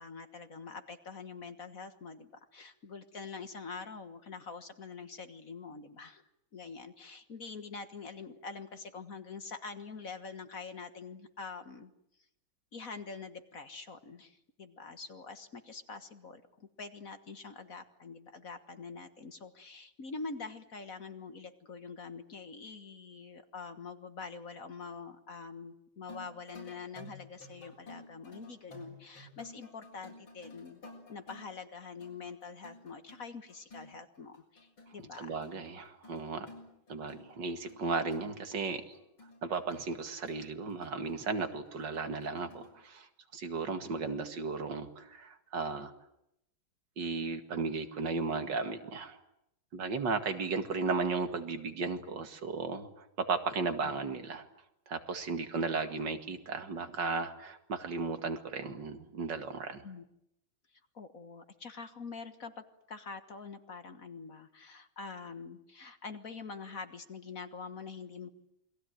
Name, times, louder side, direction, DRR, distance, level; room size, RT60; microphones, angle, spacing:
voice 1, 0.0-6.2 6.5-11.9 12.7-30.8 31.1-35.4 53.8-54.1 55.6-56.1 59.8-60.0 60.9-68.3, left 4 dB, 45° left, 9 dB, 1.8 m, -45 dB
sound 1, 26.1-42.8, left 2 dB, 80° left, 7.7 m, -53 dB
voice 2, 35.2-36.5 36.9-39.0 39.4-45.9 47.0-49.2 49.7-54.5 54.9-59.8, right 4 dB, 60° right, 8 dB, 2.6 m, -35 dB
28.5 x 22.0 x 9.2 m, 0.80 s
omnidirectional pair, 2.2 m